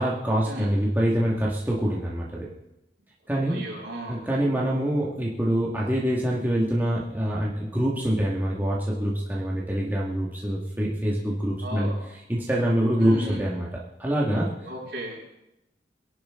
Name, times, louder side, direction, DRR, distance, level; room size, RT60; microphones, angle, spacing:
voice 1, 0.0-2.5 3.3-3.6 4.1-11.9 12.3-13.7 14.0-14.5, equal, 10° right, -5 dB, 1.8 m, -25 dB
voice 2, 3.5-4.2 11.6-12.0 13.0-13.5 14.6-15.2, equal, 60° right, -4 dB, 6.4 m, -35 dB
22.5 x 11.5 x 3.7 m, 0.92 s
head